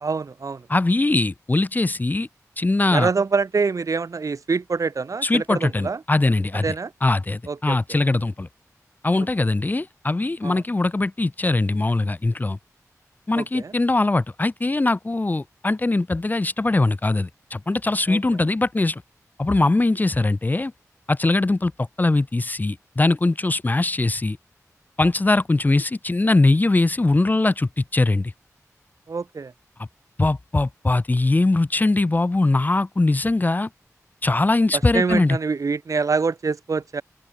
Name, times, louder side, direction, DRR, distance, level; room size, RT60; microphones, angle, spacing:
voice 1, 0.0-0.7 2.9-6.0 6.6-6.9 7.5-7.8 10.4-10.6 13.3-13.7 18.1-18.2 29.1-29.5 34.9-37.0, right 4 dB, 70° right, 2.4 m, -25 dB
voice 2, 0.7-2.3 2.6-3.1 5.2-6.7 7.0-8.5 9.0-12.6 13.3-19.0 19.4-20.7 21.1-24.4 25.0-28.3 29.8-29.9 30.2-33.7 34.2-35.4, left 2 dB, 30° left, 0.9 m, -21 dB
open air
wide cardioid pair, 100°, 6 cm